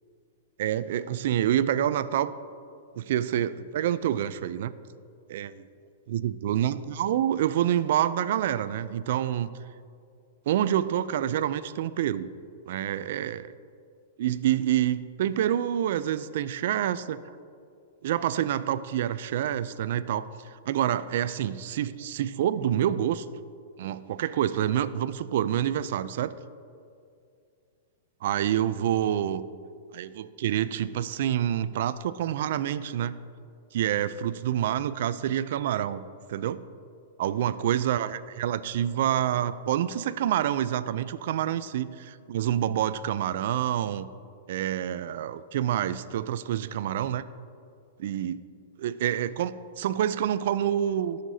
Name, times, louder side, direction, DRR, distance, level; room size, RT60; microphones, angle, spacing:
voice 1, 0.6-2.3 3.0-4.7 5.3-5.5 6.1-9.5 10.5-12.3 12.7-13.5 14.2-17.2 18.0-20.3 20.7-23.2 23.8-26.3 28.2-29.4 29.9-33.2 33.7-36.0 36.3-36.7 37.2-44.1 44.5-47.2 48.0-48.4 48.8-51.2, right 11 dB, 60° right, 15 dB, 0.3 m, -27 dB
16.5 x 6.5 x 2.7 m, 2.4 s
hypercardioid pair, 155°, 0 cm